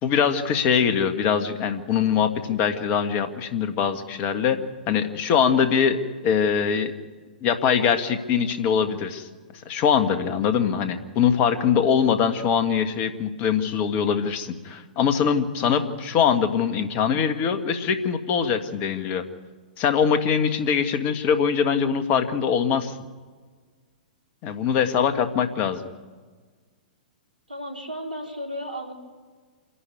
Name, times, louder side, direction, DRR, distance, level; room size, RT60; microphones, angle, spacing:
voice 1, 0.0-4.6 4.9-6.0 6.2-6.9 7.4-9.3 9.7-19.3 19.8-22.9 24.4-25.8, left 7 dB, 35° left, 8 dB, 1.7 m, -22 dB
voice 2, 27.5-28.9, equal, 80° right, 2 dB, 3.6 m, -34 dB
26.5 x 11.5 x 9.3 m, 1.4 s
figure-of-eight pair, 110°, 5 cm